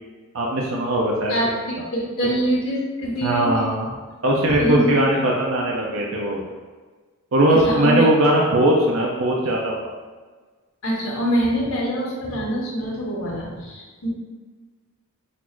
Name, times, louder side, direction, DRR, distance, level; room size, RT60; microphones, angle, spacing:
voice 1, 0.3-1.3 3.2-3.9 4.2-6.4 7.3-9.9, right 1 dB, 60° right, -2 dB, 0.6 m, -19 dB
voice 2, 1.9-3.5 4.5-4.9 7.6-8.0 10.8-14.1, equal, 65° left, -4 dB, 1.3 m, -24 dB
4.1 x 2.5 x 4.4 m, 1.4 s
head